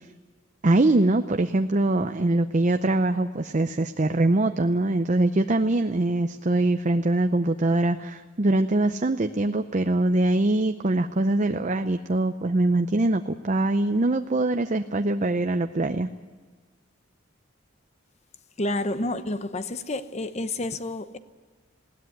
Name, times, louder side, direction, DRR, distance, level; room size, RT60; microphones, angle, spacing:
voice 1, 0.6-16.1, right 2 dB, 40° right, 0.6 m, -23 dB
voice 2, 18.6-21.2, left 2 dB, 35° left, 0.9 m, -29 dB
20.0 x 17.0 x 9.4 m
head